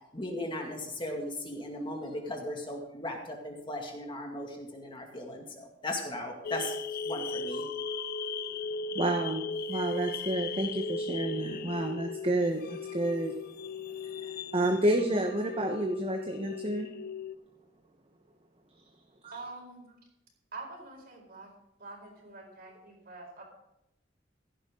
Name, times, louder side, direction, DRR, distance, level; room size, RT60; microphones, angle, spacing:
voice 1, 0.1-6.7 7.1-7.6, left 1 dB, 25° left, 1 dB, 2.2 m, -37 dB
sound 1, 6.4-17.4, left 4 dB, 55° left, 0.5 m, -37 dB
voice 2, 8.9-9.4 9.7-13.4 14.0-16.9, right 1 dB, 30° right, 3 dB, 1.0 m, -30 dB
voice 3, 19.3-20.0 20.5-21.5 21.8-23.4, right 3 dB, 55° right, 1 dB, 4.4 m, -45 dB
16.0 x 11.0 x 3.8 m, 0.82 s
head